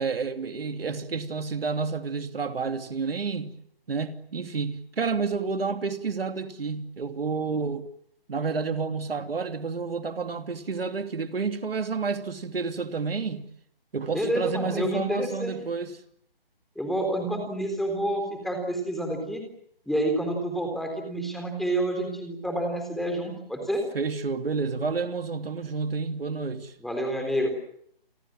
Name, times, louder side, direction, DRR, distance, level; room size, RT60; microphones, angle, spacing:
voice 1, 0.0-3.5 3.9-7.9 8.3-13.4 13.9-15.9 23.9-26.7, right 4 dB, 70° right, 2.9 m, -30 dB
voice 2, 14.1-15.6 16.8-19.4 19.9-23.8 26.8-27.5, right 1 dB, ahead, 3.7 m, -28 dB
30.0 x 23.0 x 7.7 m
hypercardioid pair, 165°, 30 cm